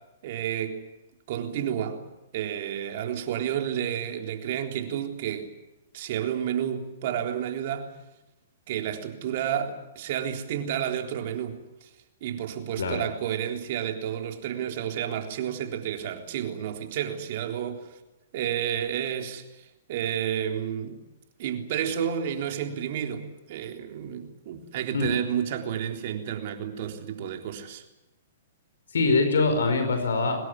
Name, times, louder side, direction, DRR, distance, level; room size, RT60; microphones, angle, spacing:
voice 1, 0.2-0.8 1.3-2.0 2.3-5.5 5.9-7.9 8.7-11.9 12.2-17.9 18.3-21.0 21.4-27.8, right 9 dB, 55° right, 3.7 m, -31 dB
voice 2, 28.9-30.5, left 3 dB, 75° left, 4.9 m, -23 dB
23.5 x 20.5 x 9.4 m
hypercardioid pair, 125°, 0 cm